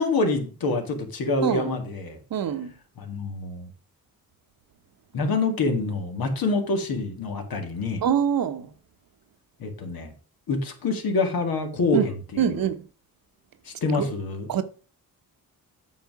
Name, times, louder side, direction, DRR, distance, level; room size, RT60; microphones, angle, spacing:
voice 1, 0.0-2.2 3.0-3.7 5.1-8.0 9.6-10.1 10.5-12.6 13.7-14.5, left 3 dB, 80° left, 2.1 m, -26 dB
voice 2, 1.4-1.8 2.3-2.7 8.0-8.7 11.9-12.1 12.4-12.9 13.9-14.1 14.5-14.6, right 8 dB, 70° right, 1.0 m, -24 dB
8.5 x 5.8 x 4.7 m
cardioid pair, 90°, 36 cm